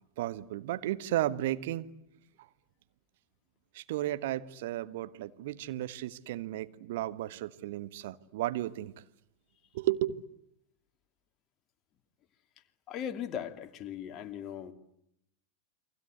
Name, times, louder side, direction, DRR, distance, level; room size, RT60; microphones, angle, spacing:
voice 1, 0.2-1.9 3.7-8.9 9.7-10.2, right 14 dB, 55° right, 1.4 m, -34 dB
voice 2, 12.9-14.7, left 9 dB, 30° left, 2.6 m, -38 dB
30.0 x 24.0 x 8.2 m
figure-of-eight pair, 90°, 0 cm